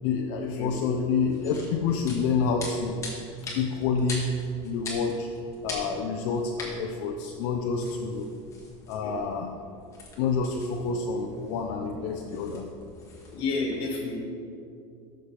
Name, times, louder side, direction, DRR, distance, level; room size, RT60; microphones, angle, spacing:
voice 1, 0.0-3.0 3.5-4.3 4.6-5.3 5.6-8.3 8.9-9.5 10.2-12.6, left 5 dB, 60° left, 2 dB, 0.7 m, -28 dB
voice 2, 0.6-0.9 9.0-9.2 13.3-14.2, left 3 dB, 35° left, -1 dB, 2.1 m, -31 dB
sound 1, 1.2-13.4, left 2 dB, 20° left, 1.8 m, -43 dB
14.0 x 6.5 x 3.4 m, 2.4 s
cardioid pair, 175°, 16 cm